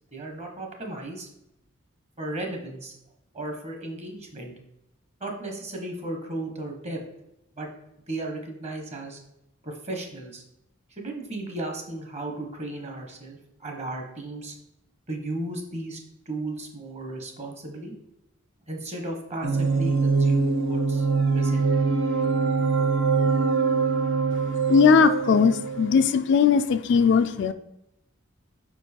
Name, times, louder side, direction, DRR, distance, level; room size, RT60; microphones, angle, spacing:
voice 1, 0.1-1.3 2.2-3.0 3.3-4.5 5.2-7.0 7.5-7.7 8.1-9.2 9.6-10.4 10.9-14.5 15.1-16.0 16.3-17.9 18.7-21.1 21.3-21.8, right 2 dB, 35° right, 3 dB, 1.1 m, -35 dB
sound 1, 19.4-26.0, right 4 dB, 70° right, 0.7 m, -23 dB
voice 2, 24.7-27.5, left 6 dB, 60° left, 10 dB, 0.3 m, -19 dB
5.0 x 4.5 x 4.3 m, 0.86 s
head